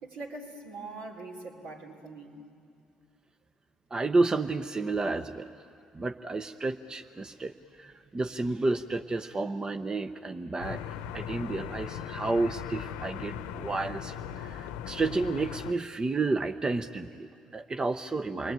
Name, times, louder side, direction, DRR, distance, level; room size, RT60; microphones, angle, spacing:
voice 1, 0.0-2.4, right 3 dB, 70° right, 0 dB, 3.8 m, -42 dB
voice 2, 3.9-5.5 5.9-10.8 11.1-18.5, right 3 dB, 30° right, 9 dB, 0.9 m, -31 dB
sound 1, 10.6-15.7, left 9 dB, 75° left, 0.8 m, -39 dB
29.0 x 22.5 x 9.1 m, 2.5 s
hypercardioid pair, 50°, 3 cm